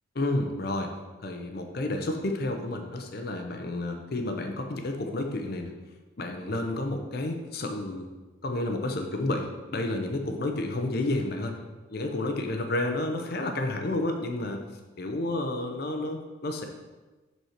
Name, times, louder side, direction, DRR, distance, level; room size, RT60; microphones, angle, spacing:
voice 1, 0.2-0.9 1.2-5.7 6.2-8.1 8.4-11.6 11.9-14.6 15.0-16.7, left 2 dB, 50° left, 4 dB, 0.6 m, -30 dB
5.5 x 4.4 x 5.8 m, 1.2 s
head